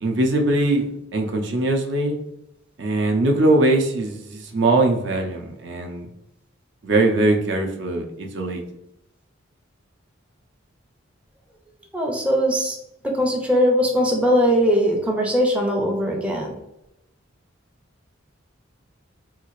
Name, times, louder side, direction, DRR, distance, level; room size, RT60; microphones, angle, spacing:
voice 1, 0.0-2.2 2.8-6.1 6.8-8.6, right 2 dB, 60° right, 3 dB, 0.5 m, -21 dB
voice 2, 11.9-12.8 13.0-16.6, equal, 5° right, -1 dB, 0.4 m, -20 dB
3.5 x 2.4 x 3.0 m, 0.87 s
head